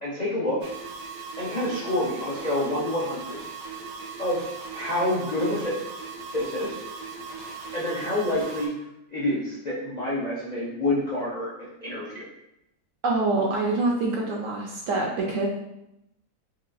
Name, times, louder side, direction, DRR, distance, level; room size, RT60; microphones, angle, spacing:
voice 1, 0.0-0.6 1.4-3.4 4.2-5.8 6.3-6.8 7.7-8.7 9.1-12.3, left 1 dB, 55° left, -8 dB, 0.4 m, -28 dB
sound 1, 0.6-8.7, right 5 dB, 85° right, 1.2 m, -38 dB
voice 2, 13.0-15.5, right 2 dB, 70° right, -1 dB, 0.8 m, -25 dB
4.6 x 2.4 x 2.5 m, 0.85 s
omnidirectional pair, 1.7 m